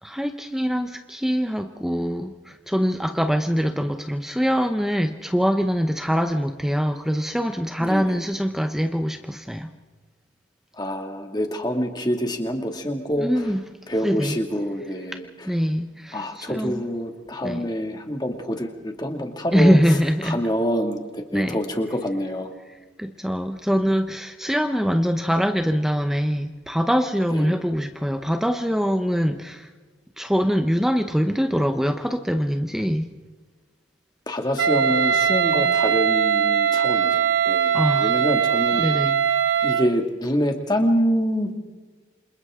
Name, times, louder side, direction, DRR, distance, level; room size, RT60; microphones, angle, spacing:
voice 1, 0.0-9.7 13.2-13.6 14.0-14.4 15.4-16.8 17.4-17.7 19.5-20.4 21.3-21.6 22.7-29.7 30.2-33.1 37.7-38.1 38.8-39.2, equal, ahead, 6 dB, 0.8 m, -23 dB
voice 2, 7.8-8.1 10.8-13.3 13.9-15.3 16.1-19.8 20.2-22.5 27.3-27.6 34.3-38.8 39.6-41.5, equal, 20° left, 4 dB, 2.2 m, -26 dB
Wind instrument woodwind instrument, 34.6-39.9, right 8 dB, 75° right, 0.9 m, -21 dB
29.0 x 27.0 x 3.7 m, 1.3 s
head